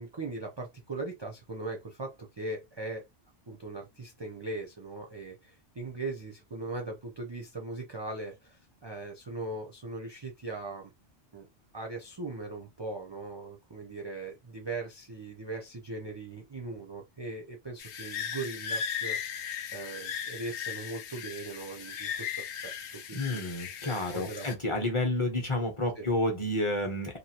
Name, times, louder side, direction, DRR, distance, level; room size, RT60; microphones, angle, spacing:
voice 1, 0.0-3.0 3.5-10.9 11.3-11.5 11.7-23.8 24.1-24.5 26.0-26.1, right 2 dB, 40° right, 0.4 m, -39 dB
sound 1, 17.8-24.5, left 7 dB, 75° left, 0.8 m, -37 dB
voice 2, 23.1-27.2, left 1 dB, 30° left, 0.8 m, -30 dB
3.0 x 2.4 x 2.8 m
omnidirectional pair, 1.2 m